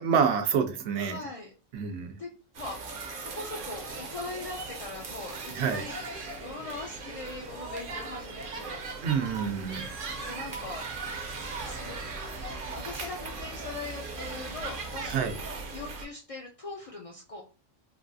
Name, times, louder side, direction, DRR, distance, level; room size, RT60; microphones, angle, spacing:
voice 1, 0.0-1.2 1.7-2.2 5.5-5.8 9.0-9.9 15.1-15.4, right 6 dB, 90° right, 0.9 m, -27 dB
voice 2, 1.0-1.5 2.2-2.3 2.6-2.8 3.2-6.0 6.4-9.1 10.2-10.9 11.6-12.0 12.7-15.2 15.7-17.4, left 3 dB, 60° left, 0.3 m, -40 dB
sound 1, 2.5-16.0, right 3 dB, 60° right, 0.7 m, -38 dB
3.2 x 2.3 x 2.6 m
omnidirectional pair, 1.1 m